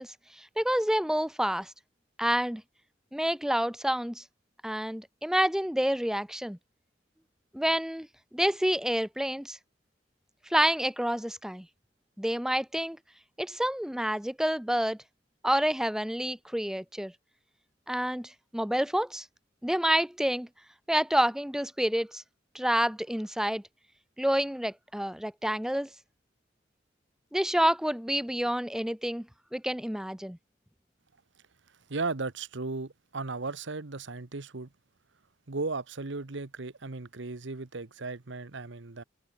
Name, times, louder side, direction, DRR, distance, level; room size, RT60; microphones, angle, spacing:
voice 1, 0.0-1.7 2.2-2.6 3.1-4.2 4.6-6.6 7.5-8.1 8.3-9.6 10.5-11.7 12.2-13.0 13.4-15.0 15.4-17.1 17.9-19.3 19.6-20.5 20.9-22.2 22.5-23.6 24.2-25.9 27.3-29.3 29.5-30.4, equal, 5° right, 0.8 m, -28 dB
voice 2, 31.9-34.7 35.5-39.0, right 3 dB, 70° right, 1.1 m, -36 dB
head